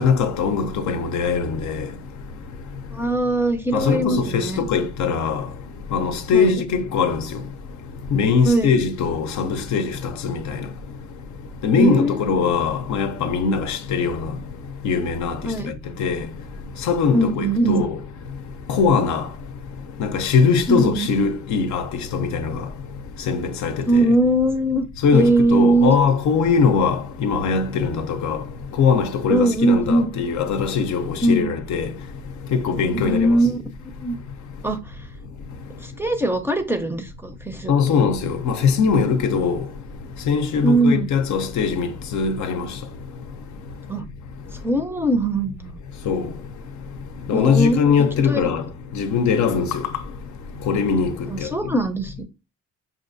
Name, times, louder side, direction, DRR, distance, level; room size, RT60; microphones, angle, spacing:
voice 1, 0.0-1.9 3.7-5.4 5.9-7.2 8.1-9.9 10.2-10.6 11.6-14.3 14.8-15.4 16.0-16.2 16.9-17.9 18.7-19.3 20.0-22.6 23.3-24.0 25.0-28.4 28.8-31.9 32.5-33.3 37.7-39.6 40.3-42.7 46.1-46.3 47.3-48.6 48.9-49.8 50.7-51.1, left 5 dB, 70° left, 0.6 m, -21 dB
voice 2, 2.9-4.6 6.3-6.6 8.4-8.7 11.8-12.3 15.4-15.7 17.1-17.8 20.7-21.1 23.9-24.8 25.1-26.0 29.3-30.1 31.2-31.5 32.9-34.1 34.6-35.0 35.8-38.0 40.6-41.1 43.9-44.1 44.6-45.8 47.3-48.5 51.3-52.2, right 2 dB, 10° right, 0.5 m, -21 dB
5.5 x 2.4 x 2.5 m
cardioid pair, 90°, 30 cm